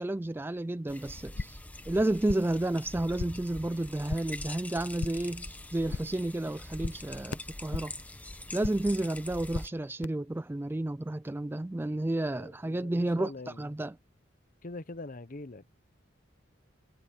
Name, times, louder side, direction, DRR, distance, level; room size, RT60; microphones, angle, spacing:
voice 1, 0.0-1.6 1.9-7.9 8.5-13.3 13.6-14.0, right 1 dB, 10° right, 0.3 m, -31 dB
sound 1, 0.9-9.7, left 1 dB, 10° left, 0.8 m, -44 dB
sound 2, 1.2-1.7 2.0-2.6 2.9-3.5 3.8-4.4 4.7-5.4 5.7-6.3 6.5-8.1 8.3-9.0 9.2-10.0, left 4 dB, 65° left, 0.6 m, -39 dB
voice 2, 12.3-13.7 14.6-15.6, left 2 dB, 45° left, 0.9 m, -43 dB
head